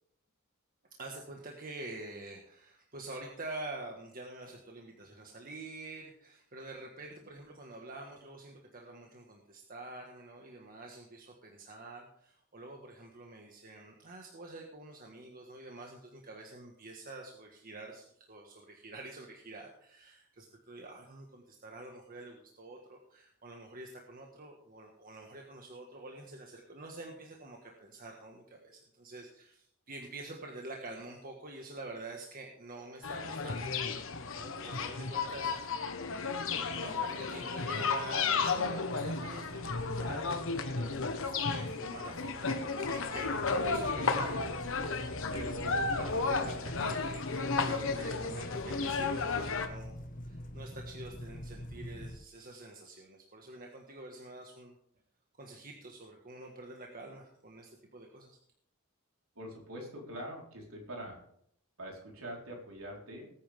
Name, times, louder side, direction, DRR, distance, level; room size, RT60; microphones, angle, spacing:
voice 1, 0.9-34.0 34.3-35.7 36.6-54.7 55.4-58.4, right 2 dB, 40° right, 1 dB, 1.6 m, -47 dB
sound 1, 33.0-49.7, left 4 dB, 65° left, 1.3 m, -33 dB
sound 2, 43.6-52.2, equal, 40° left, 1.4 m, -44 dB
voice 2, 59.3-61.2 61.8-63.3, equal, 70° right, -1 dB, 4.3 m, -44 dB
20.0 x 9.2 x 3.6 m, 0.70 s
head